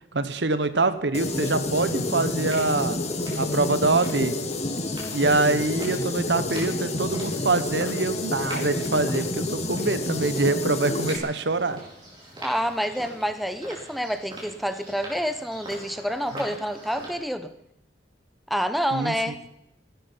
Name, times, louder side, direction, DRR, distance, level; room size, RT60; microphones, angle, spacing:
voice 1, 0.1-3.0 3.3-4.4 5.1-11.8 18.9-19.1, right 3 dB, 70° right, 12 dB, 1.0 m, -24 dB
sound 1, 1.1-11.2, left 2 dB, 40° left, 1.6 m, -29 dB
sound 2, 1.7-17.1, right 1 dB, 25° right, 4.9 m, -43 dB
voice 2, 12.4-17.5 18.5-19.4, equal, ahead, 9 dB, 0.8 m, -28 dB
17.5 x 11.5 x 5.6 m, 0.80 s
head